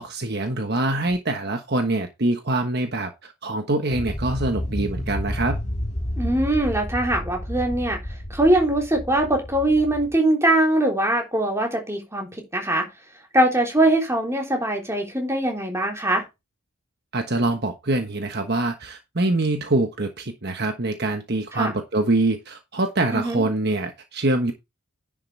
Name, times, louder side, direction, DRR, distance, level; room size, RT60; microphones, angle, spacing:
voice 1, 0.0-5.6 17.1-24.5, right 2 dB, 50° right, 1.3 m, -24 dB
Space Pad Low and Long, 3.9-10.2, left 1 dB, 30° left, 1.7 m, -30 dB
voice 2, 6.2-8.0 8.3-12.3 12.5-12.9 13.3-16.2 21.6-21.7 23.1-23.5, right 1 dB, 10° right, 3.5 m, -21 dB
10.5 x 7.6 x 3.3 m
head